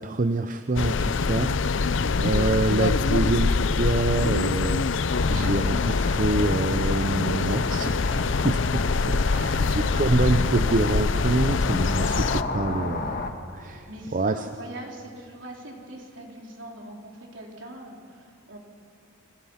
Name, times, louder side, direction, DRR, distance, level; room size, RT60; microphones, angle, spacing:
voice 1, 0.0-5.0 5.3-7.9 8.4-13.2 13.5-13.9 14.1-14.4, right 2 dB, 40° right, 8 dB, 0.7 m, -26 dB
sound 1, 0.8-12.4, left 4 dB, 65° left, 0.6 m, -24 dB
sound 2, 5.1-13.3, left 2 dB, 45° left, 1.8 m, -32 dB
voice 2, 9.3-10.0 13.6-18.6, right 1 dB, 65° right, -1 dB, 4.4 m, -42 dB
29.5 x 24.5 x 5.8 m, 2.3 s
head